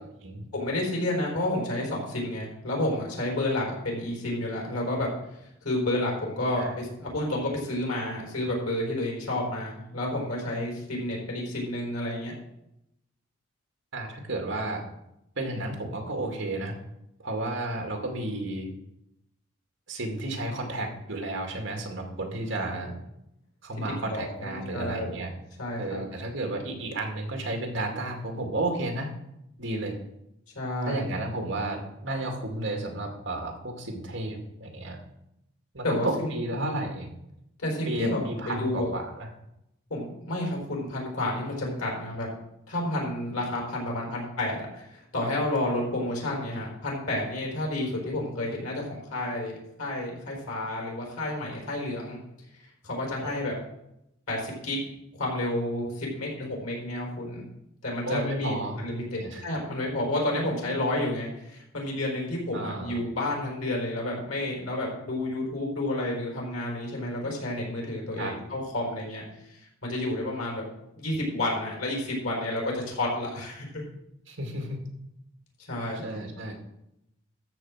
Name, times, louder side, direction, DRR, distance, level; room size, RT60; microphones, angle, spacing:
voice 1, 0.5-5.1 5.6-12.3 22.7-22.9 24.1-25.1 25.6-26.0 30.5-31.0 35.8-36.3 37.6-38.9 39.9-42.3 42.7-49.5 49.8-52.2 52.8-53.6 54.3-54.8 55.2-57.4 57.8-69.2 69.5-70.6 70.9-73.8 75.7-76.0, left 1 dB, 90° left, -1 dB, 4.4 m, -30 dB
voice 2, 13.9-14.9 15.4-16.8 17.2-18.7 19.9-22.9 23.6-25.3 25.8-29.1 29.6-29.9 30.9-35.0 35.7-37.1 37.9-39.3 53.2-53.3 58.0-59.4 62.5-63.0 68.2-68.3 74.3-74.8 75.9-76.5, right 2 dB, 60° right, 2 dB, 2.2 m, -32 dB
13.0 x 4.5 x 7.6 m, 0.82 s
head